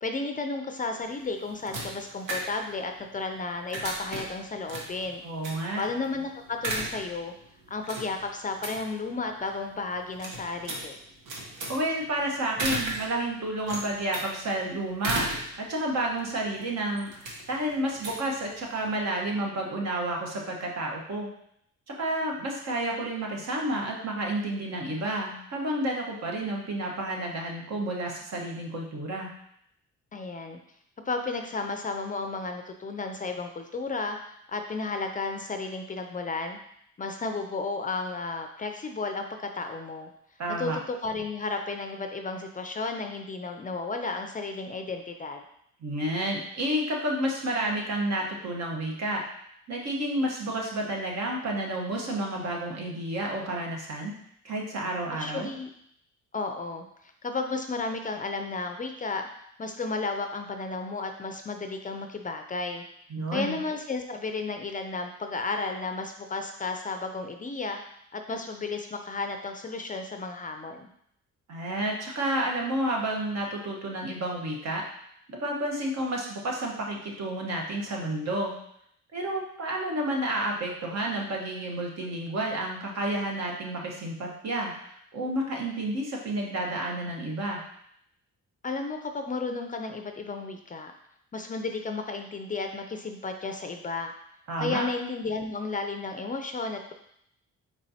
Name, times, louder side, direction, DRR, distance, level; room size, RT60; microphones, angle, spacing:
voice 1, 0.0-5.2 5.8-7.3 7.7-11.0 30.1-30.6 31.1-36.6 37.0-39.3 39.5-40.1 40.6-45.4 55.1-55.7 56.3-59.2 59.6-62.8 63.3-67.8 68.1-70.9 88.6-90.9 91.3-94.1 94.6-96.9, left 3 dB, 25° left, 5 dB, 0.4 m, -33 dB
sound 1, 1.0-19.0, right 1 dB, 90° right, 1.0 m, -37 dB
voice 2, 5.2-5.8 11.7-21.3 22.0-29.3 40.4-40.8 45.8-49.2 49.7-54.1 54.4-55.5 63.1-63.6 71.5-74.8 75.4-78.5 79.1-87.6 94.5-94.8, right 1 dB, 60° right, -1 dB, 1.2 m, -30 dB
4.6 x 4.2 x 2.7 m, 0.72 s
cardioid pair, 90°, 30 cm